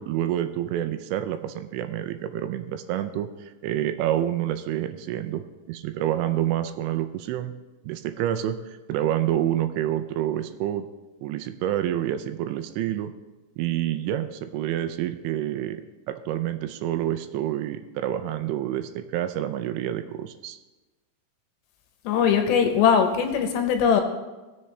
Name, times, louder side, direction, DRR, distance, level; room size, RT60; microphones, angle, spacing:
voice 1, 0.0-7.5 7.9-10.9 11.2-13.1 13.6-15.8 16.1-20.6, right 12 dB, 85° right, 9 dB, 2.8 m, -28 dB
voice 2, 22.0-24.0, left 7 dB, 75° left, 5 dB, 2.9 m, -20 dB
17.0 x 6.9 x 3.2 m, 1.2 s
omnidirectional pair, 5.3 m